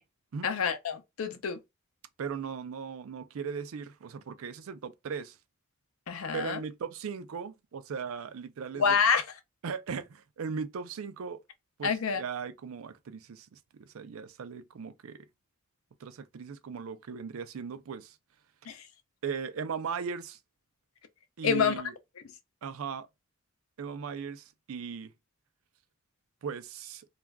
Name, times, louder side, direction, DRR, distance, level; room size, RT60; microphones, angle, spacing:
voice 1, 0.4-1.6 6.1-6.6 8.8-9.2 11.8-12.2 18.7-18.8 21.4-21.8, left 6 dB, 85° left, 0.5 m, -27 dB
voice 2, 2.2-5.4 6.3-8.9 9.6-11.4 11.8-15.2 16.0-18.2 19.2-20.4 21.4-21.9 22.6-23.1 23.8-25.1 26.4-27.1, right 6 dB, 80° right, 0.4 m, -38 dB
2.4 x 2.3 x 3.3 m
head